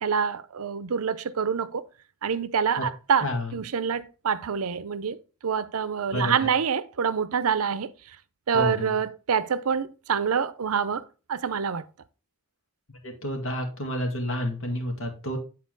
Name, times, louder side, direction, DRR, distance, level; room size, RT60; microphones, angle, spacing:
voice 1, 0.0-1.8 2.2-3.3 3.5-7.9 8.5-11.8, right 6 dB, 80° right, 0.5 m, -26 dB
voice 2, 3.2-3.5 6.1-6.5 8.5-9.0 13.0-15.4, left 1 dB, 65° left, 2.0 m, -30 dB
9.4 x 4.3 x 3.8 m
head